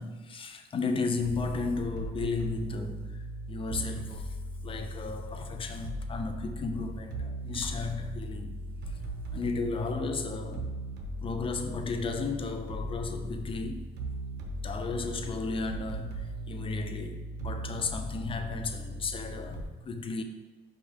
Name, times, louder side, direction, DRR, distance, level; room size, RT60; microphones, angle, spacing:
voice 1, 0.0-4.4 4.6-9.0 9.3-10.7 11.2-13.9 14.6-20.2, left 4 dB, 30° left, 0.6 m, -34 dB
sound 1, 1.2-19.6, right 1 dB, 85° right, 0.9 m, -38 dB
5.3 x 5.2 x 3.6 m
cardioid pair, 110°, 17 cm